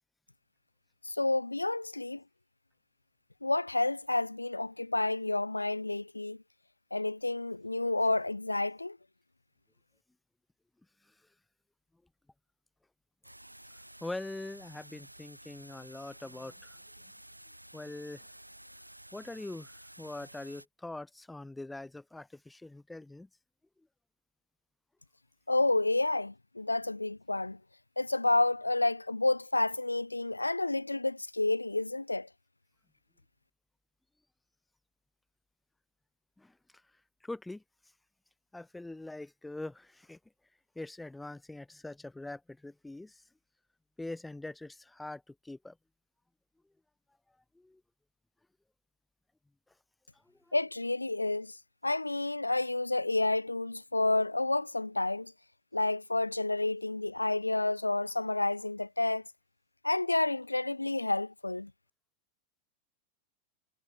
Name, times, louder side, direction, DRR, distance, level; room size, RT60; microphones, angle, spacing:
voice 1, 1.0-2.2 3.4-6.4 6.9-9.0 25.5-27.6 28.0-32.3 50.5-55.3 55.7-59.2 59.8-61.7, left 2 dB, 85° left, 0.4 m, -30 dB
sound 1, 13.2-20.7, right 1 dB, 90° right, 6.0 m, -52 dB
voice 2, 14.0-16.8 17.7-18.3 19.1-19.7 20.0-23.3 36.4-36.8 37.2-37.6 38.5-40.2 40.8-43.2 44.0-45.8 47.5-47.8 50.1-50.6, left 2 dB, 5° left, 3.7 m, -43 dB
figure-of-eight pair, 90°, 0 cm